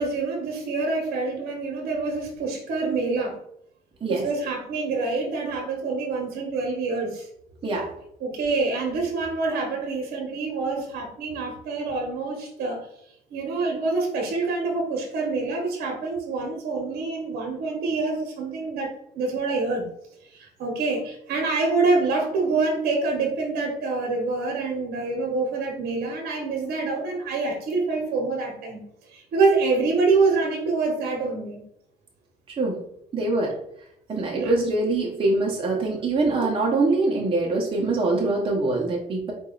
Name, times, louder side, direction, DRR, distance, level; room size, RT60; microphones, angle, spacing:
voice 1, 0.0-3.4 4.1-7.3 8.2-12.8 13.3-19.9 20.3-31.7 34.4-34.6, right 3 dB, 65° right, 1 dB, 1.1 m, -26 dB
voice 2, 32.5-32.8 33.1-33.5 34.1-39.3, right 2 dB, 30° right, -2 dB, 0.9 m, -24 dB
4.2 x 2.6 x 3.9 m, 0.75 s
cardioid pair, 110°, 17 cm